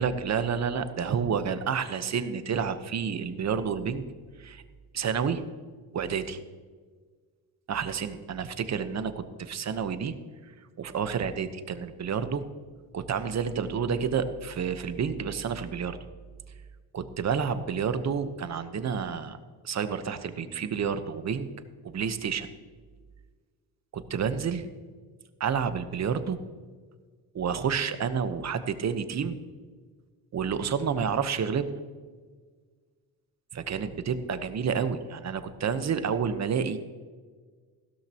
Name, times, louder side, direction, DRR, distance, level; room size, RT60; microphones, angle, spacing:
voice 1, 0.0-4.1 4.4-4.6 4.9-5.4 5.9-6.4 7.7-10.1 10.8-12.4 12.9-16.0 16.9-19.4 19.6-21.5 21.8-22.5 23.9-24.6 25.4-26.4 27.3-29.4 30.3-31.7 33.5-36.8, right 6 dB, 45° right, 10 dB, 1.1 m, -29 dB
16.0 x 13.0 x 3.0 m, 1.5 s
cardioid pair, 105°, 37 cm